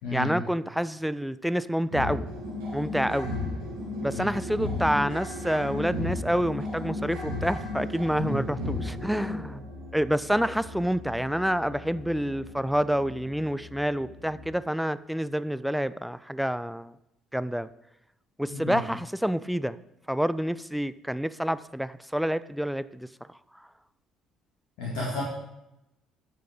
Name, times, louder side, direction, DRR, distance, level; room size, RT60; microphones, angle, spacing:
voice 1, 0.1-2.2 2.7-3.3 4.0-9.7 9.9-16.9 17.3-17.7 18.4-19.8 20.1-23.1, equal, ahead, 15 dB, 0.3 m, -28 dB
sound 1, 1.9-14.6, left 2 dB, 65° right, 2.2 m, -35 dB
voice 2, 24.8-25.2, left 2 dB, 60° left, -6 dB, 1.9 m, -32 dB
10.0 x 6.6 x 3.7 m, 0.88 s
figure-of-eight pair, 50°, 0 cm